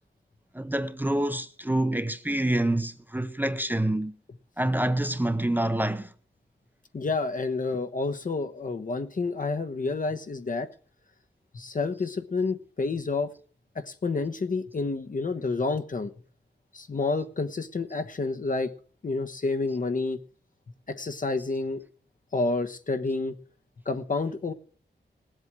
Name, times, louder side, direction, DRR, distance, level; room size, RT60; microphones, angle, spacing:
voice 1, 0.5-4.2 4.6-6.1, right 1 dB, 10° right, 0.7 m, -27 dB
voice 2, 6.9-10.7 11.5-13.3 13.7-16.1 16.7-18.7 19.0-20.2 20.9-21.8 22.3-23.3 23.8-24.5, left 3 dB, 45° left, 1.2 m, -29 dB
19.5 x 8.1 x 6.2 m
wide cardioid pair, 120°, 18 cm